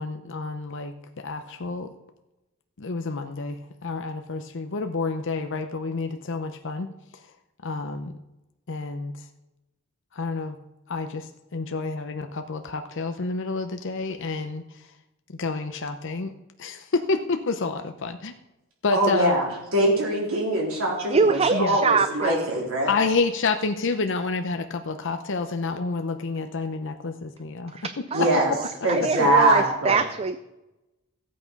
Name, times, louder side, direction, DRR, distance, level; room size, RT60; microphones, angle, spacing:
voice 1, 0.0-1.9 2.8-7.2 7.6-8.1 8.7-9.1 10.1-10.6 10.9-14.9 15.3-16.3 16.6-18.3 18.8-19.4 21.5-21.8 22.8-28.3, left 3 dB, 60° left, 7 dB, 0.7 m, -29 dB
voice 2, 18.9-19.5 19.7-22.9 28.1-28.5 28.8-30.0, right 1 dB, 70° right, -2 dB, 3.8 m, -22 dB
voice 3, 21.1-22.6 27.7-30.4, right 5 dB, 30° right, 11 dB, 0.4 m, -24 dB
15.0 x 8.5 x 5.3 m, 0.97 s
head